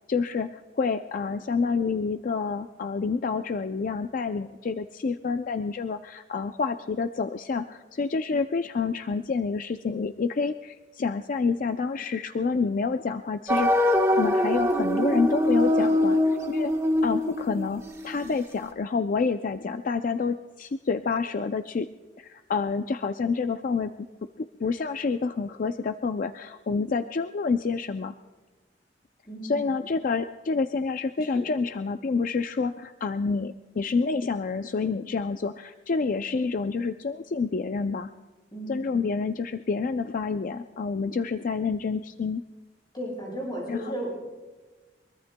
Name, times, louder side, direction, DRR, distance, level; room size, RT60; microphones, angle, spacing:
voice 1, 0.1-16.7 17.0-21.9 22.2-23.9 24.4-28.1 29.4-38.1 38.7-42.4 43.7-43.9, left 4 dB, 50° left, 9 dB, 0.4 m, -28 dB
sound 1, 13.5-18.3, left 1 dB, 15° right, 1.2 m, -23 dB
voice 2, 29.2-29.8 31.3-31.5 38.5-39.0 42.9-44.2, equal, 25° left, -4 dB, 6.3 m, -35 dB
23.0 x 22.5 x 2.2 m, 1.2 s
head